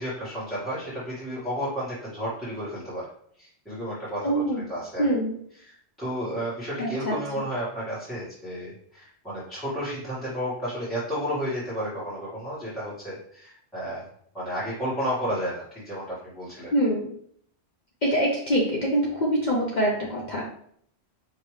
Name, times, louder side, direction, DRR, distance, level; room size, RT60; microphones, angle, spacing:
voice 1, 0.0-3.1 3.4-4.4 4.7-5.1 5.6-14.1 14.3-16.7, equal, ahead, -10 dB, 1.6 m, -32 dB
voice 2, 4.2-4.7 5.0-5.4 6.8-7.2 16.7-17.1 18.0-20.4, equal, 45° left, -3 dB, 0.8 m, -24 dB
4.8 x 2.9 x 3.1 m, 0.64 s
omnidirectional pair, 1.1 m